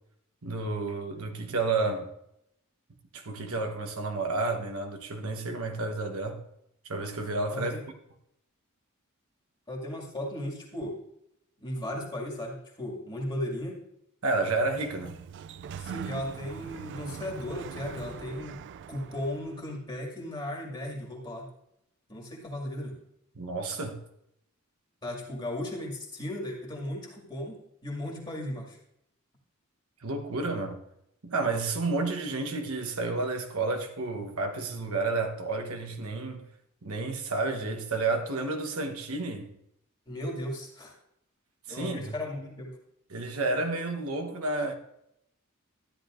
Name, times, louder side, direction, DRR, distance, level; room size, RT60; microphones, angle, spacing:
voice 1, 0.4-2.1 3.1-6.4 6.9-7.7 14.2-15.2 23.3-24.0 30.0-30.8 31.2-36.4 36.8-39.5 41.7-42.1 43.1-44.7, right 3 dB, 75° right, 1.1 m, -31 dB
voice 2, 7.5-7.8 9.7-11.0 11.6-13.8 15.8-18.6 18.9-21.5 22.1-23.0 25.0-28.8 40.1-40.9 41.7-42.8, left 1 dB, 20° left, 2.2 m, -36 dB
Sliding door, 14.5-19.7, right 7 dB, 55° right, 0.3 m, -42 dB
13.5 x 10.0 x 2.5 m
head